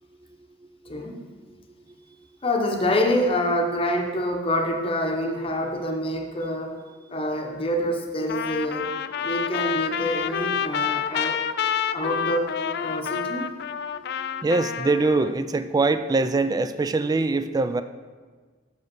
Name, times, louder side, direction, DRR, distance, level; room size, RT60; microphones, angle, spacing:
voice 1, 0.9-1.2 2.4-6.8 7.1-8.9 9.2-11.4 11.9-12.5 12.8-13.6, left 1 dB, 30° left, 2 dB, 0.8 m, -26 dB
Trumpet, 8.3-15.3, left 8 dB, 60° left, 0.3 m, -28 dB
voice 2, 14.4-17.8, right 3 dB, 20° right, 11 dB, 0.3 m, -23 dB
7.0 x 5.4 x 6.0 m, 1.4 s
head